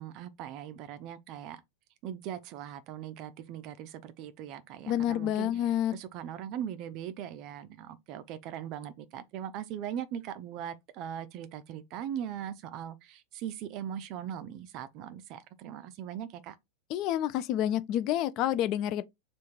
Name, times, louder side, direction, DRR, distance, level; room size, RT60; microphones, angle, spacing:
voice 1, 0.0-1.6 2.0-16.6, right 9 dB, 40° right, 0.4 m, -40 dB
voice 2, 4.9-5.9 16.9-19.0, left 11 dB, 40° left, 0.4 m, -28 dB
3.5 x 2.5 x 4.5 m
figure-of-eight pair, 90°, 0 cm